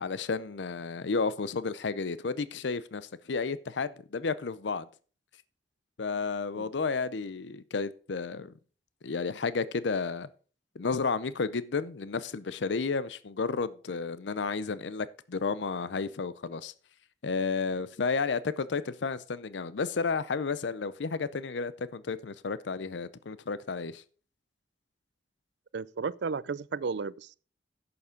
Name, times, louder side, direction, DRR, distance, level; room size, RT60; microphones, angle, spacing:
voice 1, 0.0-4.9 6.0-8.5 9.0-10.3 10.8-16.7 17.2-24.0, left 4 dB, 75° left, 0.6 m, -32 dB
voice 2, 25.7-27.4, right 5 dB, 70° right, 0.5 m, -33 dB
11.0 x 7.0 x 5.1 m
head